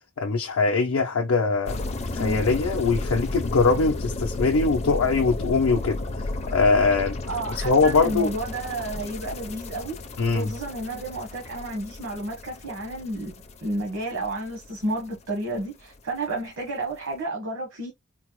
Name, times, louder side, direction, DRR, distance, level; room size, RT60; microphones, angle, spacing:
voice 1, 0.2-1.8 2.1-6.0 6.5-7.2 7.6-8.3 10.2-10.5, left 4 dB, 80° left, 0.5 m, -22 dB
sound 1, 1.7-15.7 16.0-16.2, left 2 dB, 30° left, 0.4 m, -33 dB
voice 2, 2.1-2.5 7.3-10.0 10.3-13.3 13.6-17.9, right 2 dB, 65° right, 1.0 m, -31 dB
3.9 x 2.0 x 2.9 m
head